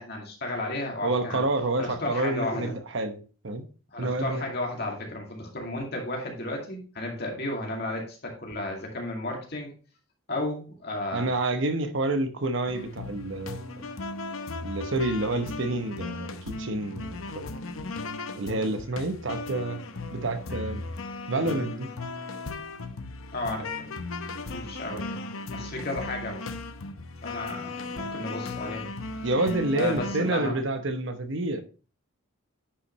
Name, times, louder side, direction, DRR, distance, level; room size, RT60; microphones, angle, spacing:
voice 1, 0.0-1.4 1.8-2.8 3.9-9.7 10.3-11.3 23.3-24.1 24.5-26.4 27.2-28.9 29.1-29.3 29.7-30.6, left 1 dB, 50° left, 2.3 m, -33 dB
voice 2, 1.0-3.7 4.0-4.4 11.1-13.9 14.6-17.5 18.4-19.8 20.1-20.8 21.3-21.9 29.2-31.6, right 2 dB, 60° right, 0.9 m, -28 dB
sound 1, 12.7-30.4, left 3 dB, 75° left, 0.8 m, -37 dB
9.9 x 5.7 x 3.1 m
head